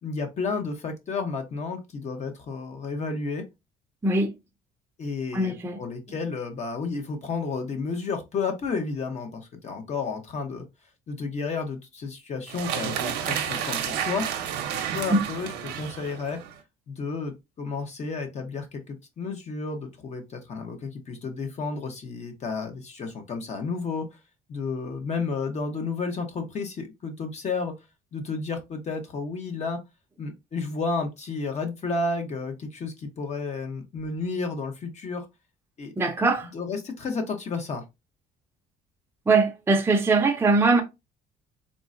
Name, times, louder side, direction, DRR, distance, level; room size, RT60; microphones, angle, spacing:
voice 1, 0.0-3.4 5.0-10.6 11.1-14.3 14.7-15.5 15.8-16.4 16.9-24.1 24.5-27.7 28.1-29.8 30.2-35.2 35.8-35.9 36.5-37.8, left 4 dB, 40° left, 0.8 m, -32 dB
voice 2, 5.3-5.8 15.1-15.2 36.0-36.5 39.3-40.8, right 3 dB, 15° right, 0.5 m, -21 dB
sound 1, 12.5-16.6, right 9 dB, 85° right, 0.6 m, -31 dB
3.7 x 2.1 x 2.5 m
cardioid pair, 110°, 17 cm